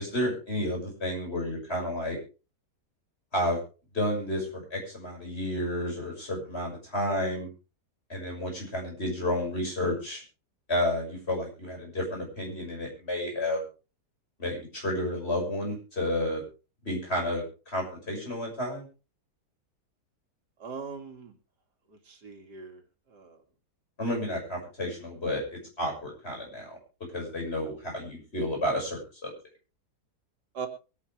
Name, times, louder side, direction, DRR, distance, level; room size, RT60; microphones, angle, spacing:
voice 1, 0.0-2.2 3.3-3.6 3.9-7.5 8.1-10.2 10.7-13.6 14.4-16.4 16.8-18.9 24.0-26.8 27.1-29.3, left 1 dB, 40° left, 1 dB, 6.6 m, -31 dB
voice 2, 20.6-21.3 21.9-22.8 23.1-23.4 30.5-30.7, right 5 dB, 90° right, 4 dB, 3.0 m, -40 dB
23.0 x 10.0 x 3.4 m, 0.33 s
omnidirectional pair, 1.7 m